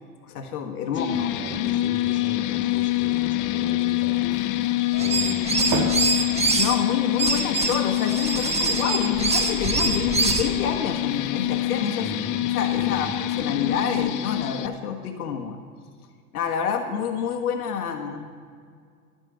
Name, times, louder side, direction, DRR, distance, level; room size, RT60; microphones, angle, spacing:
voice 1, 0.2-1.3 6.6-12.1 12.5-15.6 16.3-18.3, left 7 dB, 75° left, 5 dB, 1.5 m, -28 dB
voice 2, 0.9-4.4 5.0-5.9 12.0-13.1, left 2 dB, 25° left, 2 dB, 2.5 m, -38 dB
sound 1, 1.0-14.7, left 15 dB, 45° left, 0.8 m, -26 dB
sound 2, 4.3-13.2, right 3 dB, 45° right, 3.9 m, -38 dB
sound 3, 4.9-6.7 7.2-10.5, right 3 dB, 15° right, 1.4 m, -24 dB
13.0 x 7.1 x 8.8 m, 2.1 s
hypercardioid pair, 85°, 45 cm